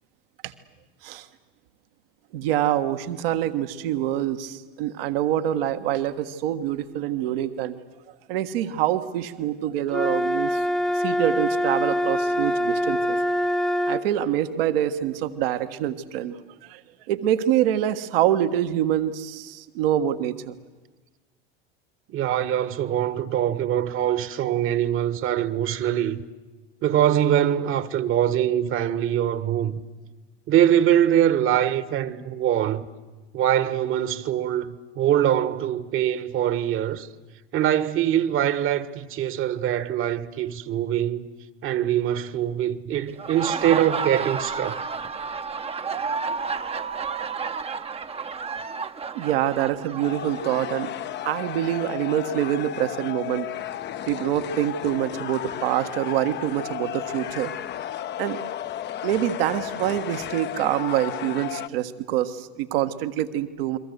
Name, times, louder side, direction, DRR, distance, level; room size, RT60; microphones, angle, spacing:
voice 1, 2.3-7.8 8.3-10.6 10.9-13.2 13.9-16.4 16.6-16.8 17.1-20.6 49.1-50.9 51.2-53.5 54.1-57.5 58.2-58.4 59.0-63.8, right 12 dB, 65° right, 1.6 m, -25 dB
sound 1, 9.9-14.0, equal, ahead, 1.1 m, -24 dB
voice 2, 22.1-26.2 26.8-29.8 30.5-32.8 33.3-37.1 37.5-41.3 41.6-44.9, right 11 dB, 40° right, 1.5 m, -23 dB
Laughter, 43.1-50.7, right 5 dB, 20° right, 0.9 m, -31 dB
sound 2, 50.0-61.7, left 11 dB, 35° left, 0.9 m, -33 dB
29.0 x 22.5 x 8.1 m
hypercardioid pair, 80°, 30 cm